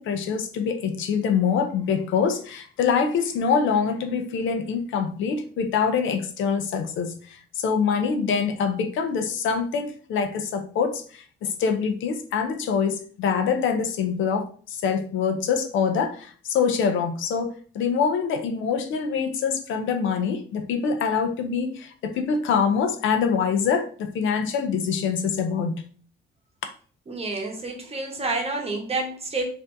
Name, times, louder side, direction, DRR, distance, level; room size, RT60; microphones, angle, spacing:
voice 1, 0.0-25.8, left 6 dB, 75° left, 0.5 m, -25 dB
voice 2, 27.1-29.4, right 3 dB, 30° right, 0.9 m, -29 dB
3.3 x 2.6 x 2.6 m
cardioid pair, 90°, 20 cm